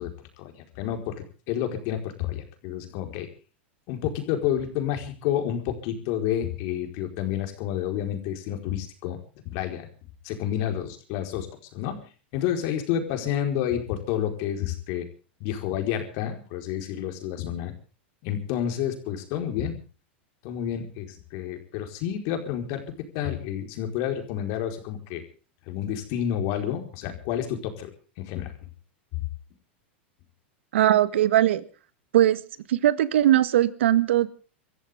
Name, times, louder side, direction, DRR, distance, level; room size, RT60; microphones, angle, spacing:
voice 1, 0.0-3.3 3.9-9.2 9.4-9.9 10.2-12.0 12.3-15.1 15.4-17.7 18.2-19.8 20.4-22.8 23.1-25.2 25.7-27.9 28.2-28.6, left 10 dB, 55° left, 5 dB, 4.7 m, -30 dB
voice 2, 30.7-31.6 32.1-32.4 32.7-34.3, right 12 dB, 80° right, 14 dB, 1.6 m, -20 dB
26.5 x 14.5 x 3.7 m, 0.37 s
hypercardioid pair, 120°, 6 cm